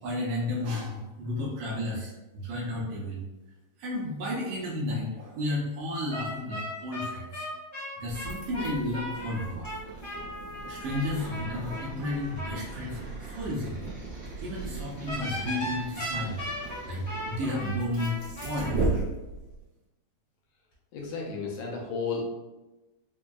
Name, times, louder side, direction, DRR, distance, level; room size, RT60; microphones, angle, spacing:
voice 1, 0.0-3.2 3.8-7.4 8.0-9.7 10.7-13.0 13.3-13.8 14.4-18.1 18.4-19.0, left 1 dB, 85° right, -4 dB, 1.3 m, -32 dB
sound 1, 6.1-12.6 15.1-18.7, equal, 40° left, 1.0 m, -37 dB
sound 2, 8.0-19.6, right 3 dB, 45° right, 1.1 m, -37 dB
voice 2, 20.9-22.2, left 5 dB, 80° left, -1 dB, 1.5 m, -33 dB
4.8 x 2.6 x 2.2 m, 1.1 s
omnidirectional pair, 3.6 m